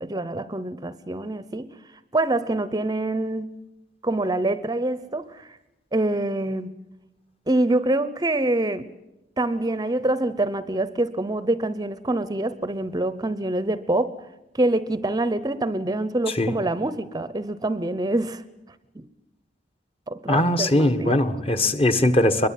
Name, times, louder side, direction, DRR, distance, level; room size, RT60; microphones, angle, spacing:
voice 1, 0.0-1.7 2.1-3.5 4.0-5.5 5.9-6.7 7.5-8.9 9.4-14.1 14.5-18.4 18.9-19.0 20.1-21.2, right 2 dB, 20° right, 15 dB, 0.8 m, -25 dB
voice 2, 20.3-22.5, left 1 dB, 30° left, 8 dB, 1.6 m, -20 dB
23.5 x 22.0 x 9.2 m, 0.95 s
head